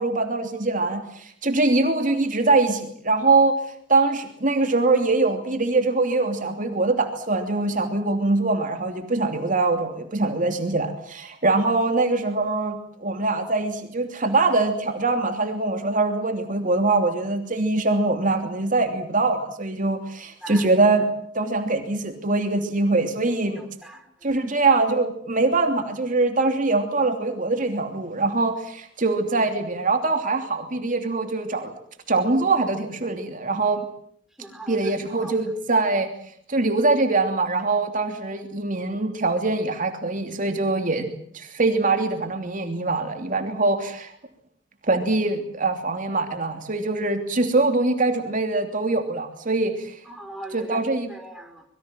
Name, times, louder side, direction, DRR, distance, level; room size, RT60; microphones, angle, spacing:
voice 1, 0.0-3.6 3.9-21.0 21.3-23.6 24.2-31.8 32.1-33.8 34.7-36.1 36.5-44.1 44.8-50.0 50.5-51.1, right 3 dB, 45° right, 5 dB, 2.9 m, -23 dB
voice 2, 23.5-24.4 34.4-34.8 35.2-35.4 38.3-38.4 50.1-50.8 51.1-51.6, right 1 dB, ahead, 3 dB, 4.5 m, -40 dB
26.0 x 22.5 x 7.6 m, 0.65 s
head